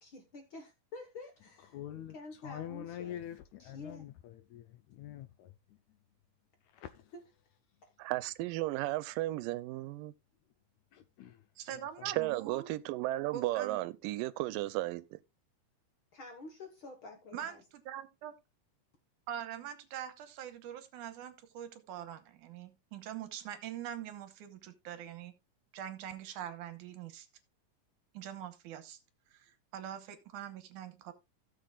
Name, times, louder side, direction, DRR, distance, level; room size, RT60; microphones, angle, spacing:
voice 1, 0.0-1.8 2.1-3.2 3.6-4.1 7.1-7.2 7.8-7.9 16.1-17.6, left 3 dB, 50° left, 1.6 m, -49 dB
voice 2, 1.7-6.0 6.6-7.1 10.9-12.2, left 11 dB, 75° left, 1.7 m, -46 dB
voice 3, 8.0-10.1 12.1-15.2, right 17 dB, 90° right, 2.3 m, -34 dB
voice 4, 11.6-12.7 13.3-13.8 17.3-18.3 19.3-25.3 25.7-27.3 28.1-29.0 29.3-31.1, right 10 dB, 75° right, 2.4 m, -43 dB
16.5 x 7.1 x 2.3 m
omnidirectional pair, 3.8 m